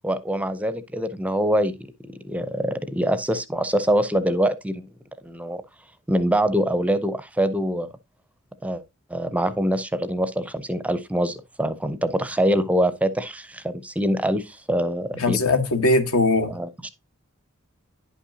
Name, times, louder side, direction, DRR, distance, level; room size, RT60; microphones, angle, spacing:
voice 1, 0.0-1.9 2.2-4.9 5.2-5.6 6.1-7.9 8.6-8.8 9.1-15.4 16.5-16.9, equal, 5° right, 0.5 m, -24 dB
voice 2, 15.2-16.5, left 2 dB, 80° left, 1.3 m, -20 dB
10.0 x 5.6 x 2.7 m
head